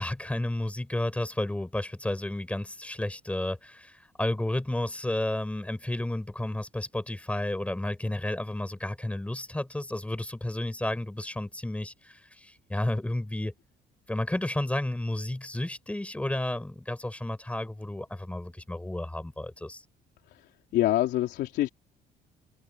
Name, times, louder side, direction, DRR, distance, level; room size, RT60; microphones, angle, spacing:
voice 1, 0.0-13.5 14.1-19.8, left 1 dB, 5° left, 7.6 m, -32 dB
voice 2, 20.7-21.7, left 14 dB, 80° left, 3.4 m, -25 dB
cardioid pair, 110°, 17 cm